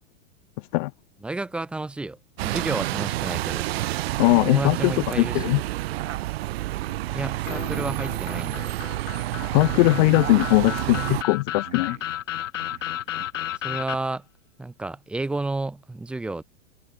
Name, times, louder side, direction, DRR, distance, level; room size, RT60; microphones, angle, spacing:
voice 1, 1.2-3.7 4.4-5.6 7.1-8.7 13.6-14.2 14.6-16.4, right 2 dB, 5° right, 0.5 m, -31 dB
Bus, 2.4-11.2, right 17 dB, 55° right, 1.0 m, -29 dB
sound 1, 2.8-2.9 3.1-3.5 3.7-4.9 5.6-9.6 9.9-12.1 12.4-13.4, right 12 dB, 75° right, 7.7 m, -43 dB
voice 2, 4.2-5.6 9.5-12.0, left 23 dB, 40° left, 1.2 m, -20 dB
sound 2, 7.5-14.0, left 11 dB, 85° left, 2.6 m, -33 dB
supercardioid pair, 155°, 37 cm